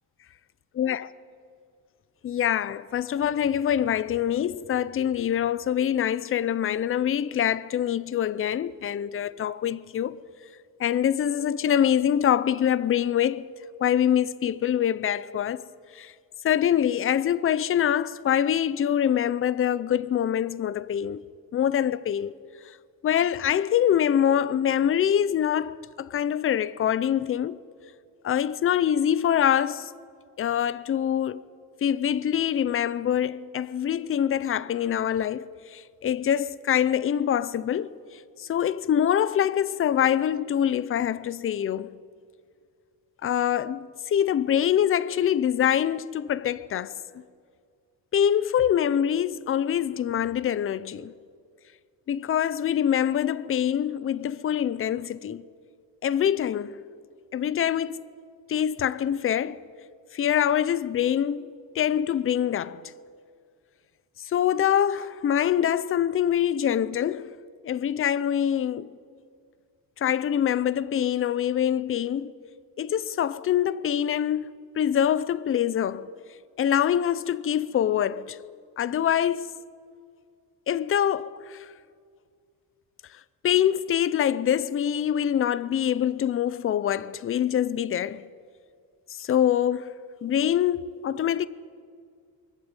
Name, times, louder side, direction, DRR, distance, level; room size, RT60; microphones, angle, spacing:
voice 1, 0.8-1.1 2.2-10.2 10.8-13.4 13.8-15.6 15.9-16.1 16.4-21.2 21.5-22.3 23.0-27.6 28.2-29.9 30.4-31.4 31.8-38.0 38.4-41.9 43.2-46.9 48.1-51.1 52.1-55.4 56.0-56.7 57.3-58.0 58.5-59.6 60.1-61.5 61.7-62.8 64.3-67.3 67.6-68.9 70.0-72.3 72.8-76.1 76.6-78.4 78.8-79.5 80.7-81.6 83.4-88.2 89.1-89.9 90.2-91.5, left 9 dB, 35° left, 0.6 m, -24 dB
24.0 x 14.0 x 9.1 m
cardioid pair, 150°, 36 cm